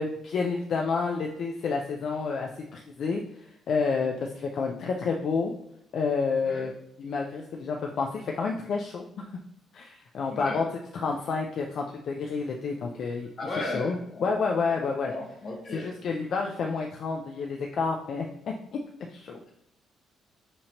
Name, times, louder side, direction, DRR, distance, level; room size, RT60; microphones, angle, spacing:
voice 1, 0.0-3.2 3.7-5.5 5.9-6.7 7.0-9.0 9.7-10.7 10.9-13.3 13.6-14.0 14.2-15.1 15.7-18.3 18.7-18.8 19.1-19.4, left 4 dB, 50° left, 1 dB, 0.4 m, -29 dB
voice 2, 10.3-10.6 13.4-14.4 14.8-15.9, left 2 dB, 30° left, -1 dB, 1.0 m, -35 dB
6.2 x 2.9 x 2.8 m, 0.79 s
cardioid pair, 160°, 0 cm